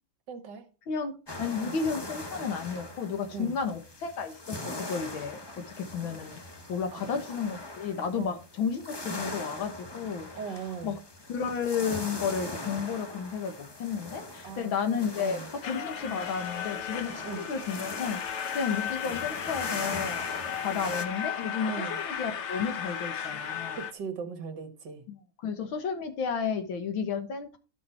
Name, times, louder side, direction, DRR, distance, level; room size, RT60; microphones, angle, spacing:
voice 1, 0.3-0.7 1.6-1.7 3.3-3.5 6.9-7.1 8.2-8.4 10.4-11.0 14.4-15.5 17.2-17.5 21.7-22.0 23.8-25.0, right 6 dB, 60° right, 1.9 m, -39 dB
voice 2, 0.9-6.4 6.7-10.3 10.8-11.0 11.3-23.8 25.1-27.6, left 6 dB, 70° left, 2.1 m, -32 dB
sound 1, 1.3-21.1, left 2 dB, 30° left, 0.4 m, -41 dB
sound 2, 15.6-23.9, left 8 dB, 90° left, 0.6 m, -35 dB
11.5 x 6.4 x 4.3 m
omnidirectional pair, 2.3 m